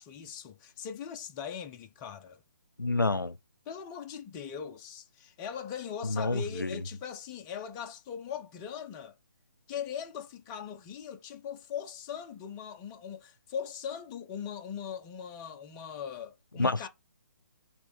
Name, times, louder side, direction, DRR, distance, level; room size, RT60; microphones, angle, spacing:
voice 1, 0.0-2.4 3.7-9.2 9.7-16.9, left 8 dB, 20° left, 0.6 m, -40 dB
voice 2, 2.8-3.4 6.0-6.8 16.6-16.9, left 2 dB, 90° left, 0.4 m, -28 dB
5.9 x 3.2 x 5.3 m
figure-of-eight pair, 140°, 10 cm